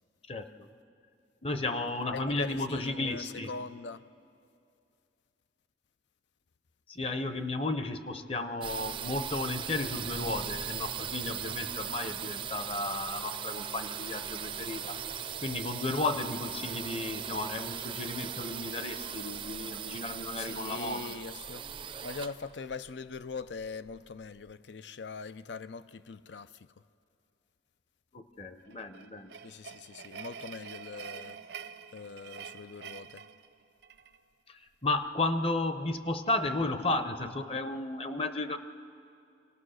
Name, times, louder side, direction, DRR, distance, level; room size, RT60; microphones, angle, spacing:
voice 1, 0.3-0.7 1.4-3.5 6.9-14.9 15.4-21.1 28.1-29.3 34.5-38.6, left 2 dB, 35° left, 0.8 m, -33 dB
voice 2, 2.1-4.1 20.3-21.7 22.0-26.7 29.4-31.6 31.9-33.2, left 4 dB, 85° left, 0.6 m, -42 dB
sound 1, 8.6-24.2, right 8 dB, 30° right, 0.5 m, -39 dB
sound 2, 28.7-34.2, right 7 dB, 70° right, 0.7 m, -46 dB
27.5 x 19.0 x 6.4 m
head